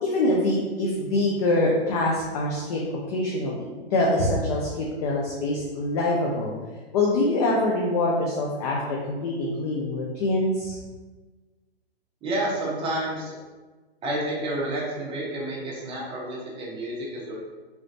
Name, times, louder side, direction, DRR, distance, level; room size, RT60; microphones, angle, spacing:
voice 1, 0.0-2.8 3.1-6.5 6.9-10.8, left 2 dB, 40° left, -3 dB, 0.5 m, -24 dB
voice 2, 12.2-13.4 14.0-17.3, right 1 dB, 15° right, -5 dB, 0.8 m, -30 dB
3.1 x 3.0 x 2.6 m, 1.3 s
hypercardioid pair, 130°, 32 cm